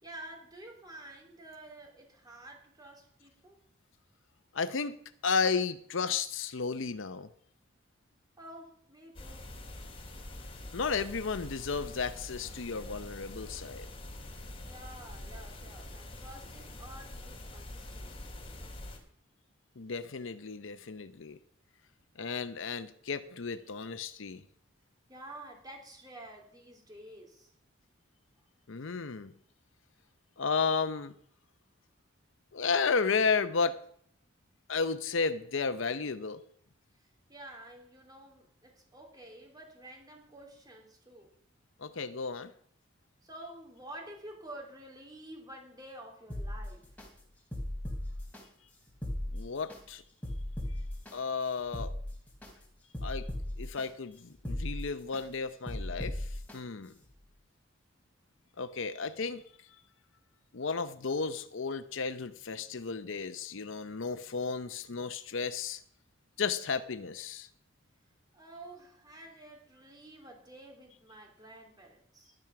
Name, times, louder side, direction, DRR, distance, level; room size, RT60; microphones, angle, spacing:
voice 1, 0.0-3.6 8.4-9.5 14.6-18.8 25.1-27.5 37.0-41.3 43.2-46.8 68.3-72.4, right 1 dB, 20° right, 1 dB, 3.3 m, -50 dB
voice 2, 4.5-7.3 10.7-13.9 19.8-21.4 22.2-24.4 28.7-29.3 30.4-31.1 32.5-33.8 34.7-36.4 41.8-42.5 49.3-50.0 51.1-51.9 53.0-53.3 53.6-56.9 58.6-59.4 60.5-65.8 66.4-67.5, left 5 dB, 70° left, 12 dB, 0.7 m, -33 dB
sound 1, 9.1-19.0, left 1 dB, 30° left, 2.9 m, -45 dB
sound 2, 46.3-47.1 47.5-48.4 48.9-49.8 50.2-51.1 51.6-52.5 52.9-53.8 54.3-55.2 55.7-56.6 57.0-57.1, left 1 dB, 5° left, 3.0 m, -37 dB
12.0 x 11.0 x 5.9 m, 0.64 s
head